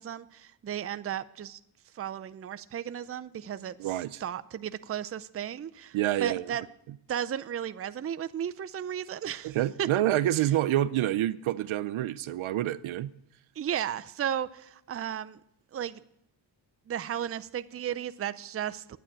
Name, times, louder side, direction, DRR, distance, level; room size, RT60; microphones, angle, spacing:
voice 1, 0.0-1.6 1.9-3.8 4.2-6.6 7.1-9.9 13.6-15.4 15.7-16.0 16.9-19.0, right 9 dB, 30° right, 0.5 m, -34 dB
voice 2, 3.8-4.2 5.9-6.5 9.4-13.1, right 13 dB, 75° right, 0.6 m, -27 dB
9.2 x 9.0 x 8.6 m
cardioid pair, 80°, 49 cm